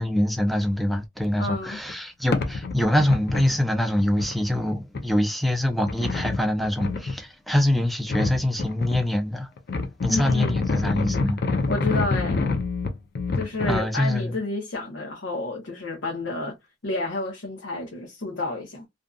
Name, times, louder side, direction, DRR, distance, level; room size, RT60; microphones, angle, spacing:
voice 1, 0.0-9.5 10.0-11.4 13.7-14.4, left 1 dB, ahead, 0.5 m, -24 dB
voice 2, 1.4-1.8 10.1-10.6 11.7-12.5 13.3-16.6 16.8-18.9, left 2 dB, 85° left, 0.8 m, -30 dB
sound 1, 1.9-2.0 2.3-3.6 4.0-4.3 4.9-5.0 5.9-7.1 8.1-9.0 9.6-13.8, left 3 dB, 60° left, 0.5 m, -26 dB
2.6 x 2.4 x 2.3 m
head